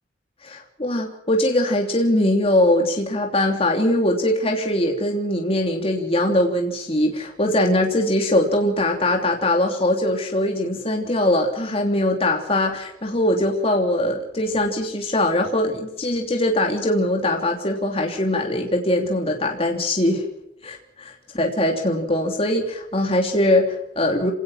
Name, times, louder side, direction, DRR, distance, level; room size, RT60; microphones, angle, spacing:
voice 1, 0.4-20.2 20.6-24.3, left 1 dB, 35° left, 2 dB, 3.1 m, -21 dB
27.5 x 19.0 x 5.9 m, 0.81 s
head